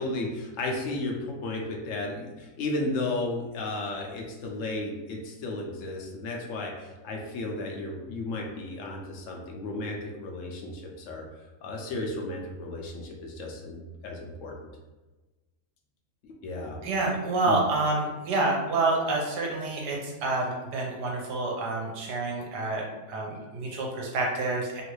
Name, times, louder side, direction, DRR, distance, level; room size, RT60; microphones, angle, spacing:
voice 1, 0.0-11.2 11.6-14.5 16.4-16.8 17.5-17.6, left 2 dB, 70° left, 0 dB, 0.7 m, -34 dB
voice 2, 16.8-24.8, right 2 dB, 75° right, -2 dB, 1.3 m, -28 dB
3.1 x 2.5 x 3.1 m, 1.2 s
omnidirectional pair, 1.8 m